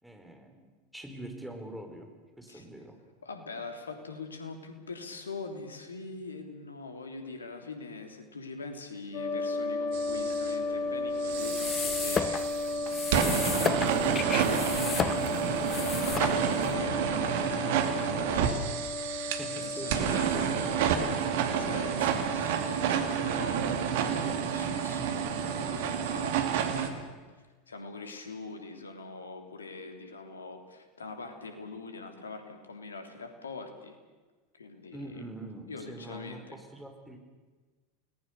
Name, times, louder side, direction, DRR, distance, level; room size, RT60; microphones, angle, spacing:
voice 1, 0.0-2.1 2.4-2.9 13.2-15.3 19.2-20.6 23.1-24.4 34.9-37.2, right 1 dB, 5° right, 3 dB, 4.9 m, -43 dB
voice 2, 3.2-12.5 14.2-18.6 19.5-27.1 27.4-34.0 34.5-35.3 35.7-36.6, left 3 dB, 80° left, 6 dB, 3.2 m, -43 dB
sound 1, 9.1-26.4, left 2 dB, 45° left, 3.5 m, -35 dB
sound 2, 9.9-10.6 11.2-26.9, right 8 dB, 60° right, 2.5 m, -30 dB
sound 3, 11.3-16.7, left 7 dB, 30° left, 0.7 m, -34 dB
29.0 x 19.5 x 6.8 m, 1.3 s
figure-of-eight pair, 85°, 0 cm